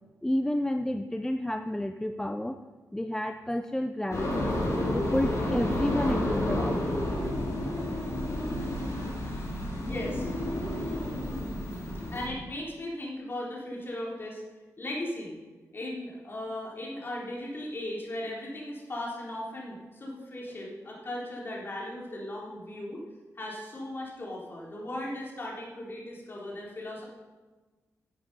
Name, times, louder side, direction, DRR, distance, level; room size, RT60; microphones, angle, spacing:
voice 1, 0.2-2.6 2.9-4.5 4.9-6.9, left 1 dB, 10° left, 7 dB, 0.5 m, -30 dB
sound 1, 4.1-12.3, left 1 dB, 60° left, 4.3 m, -30 dB
voice 2, 9.8-10.5 12.1-14.4 14.8-15.3 15.7-23.0 23.4-27.0, left 1 dB, 35° left, -4 dB, 3.9 m, -37 dB
12.0 x 7.7 x 5.5 m, 1.3 s
cardioid pair, 75°, 6 cm